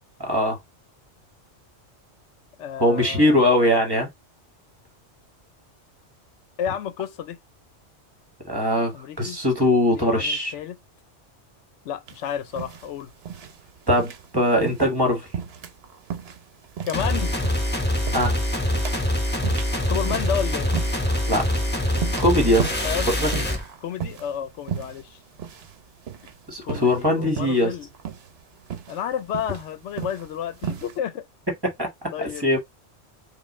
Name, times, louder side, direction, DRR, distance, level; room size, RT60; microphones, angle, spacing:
voice 1, 0.2-0.6 2.8-4.1 8.4-10.5 13.9-15.3 18.1-18.4 21.3-21.4 22.2-22.7 23.2-23.4 26.5-27.7 31.6-32.6, left 1 dB, 20° right, 1.3 m, -21 dB
voice 2, 2.6-3.8 6.6-7.4 8.9-9.4 9.9-10.8 11.8-13.1 16.8-17.5 19.8-20.7 22.8-23.1 23.8-25.2 26.6-27.9 28.9-31.3 32.1-32.6, left 9 dB, 75° left, 0.9 m, -31 dB
sound 1, 12.1-31.0, right 8 dB, 65° right, 0.9 m, -37 dB
sound 2, 16.9-23.6, left 1 dB, 10° left, 1.1 m, -24 dB
5.4 x 2.4 x 3.1 m
omnidirectional pair, 1.2 m